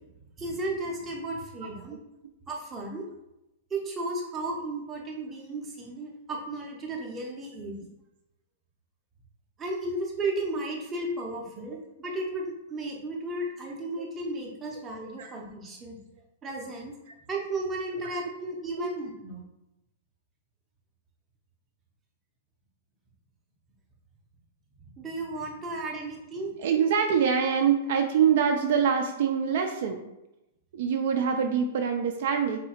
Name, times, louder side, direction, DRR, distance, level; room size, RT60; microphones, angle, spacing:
voice 1, 0.4-2.0 2.5-3.1 3.7-7.8 9.6-16.0 16.4-16.9 17.3-19.4 24.9-26.5, right 2 dB, 10° right, -1 dB, 0.7 m, -34 dB
voice 2, 26.6-30.1 30.7-32.6, right 7 dB, 50° right, 4 dB, 0.4 m, -25 dB
4.0 x 2.8 x 4.3 m, 0.91 s
supercardioid pair, 175°, 0 cm